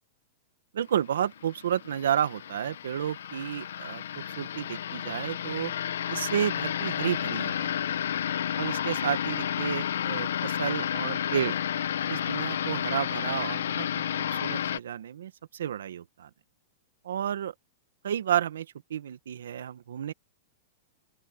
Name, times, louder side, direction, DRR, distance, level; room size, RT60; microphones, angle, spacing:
voice 1, 0.7-5.7 6.1-8.0 8.6-11.6 12.1-16.3 17.0-17.5 18.0-20.1, right 9 dB, 85° right, 1.4 m, -31 dB
sound 1, 1.3-14.8, left 9 dB, 85° left, 1.5 m, -31 dB
open air
hypercardioid pair, 130°, 0 cm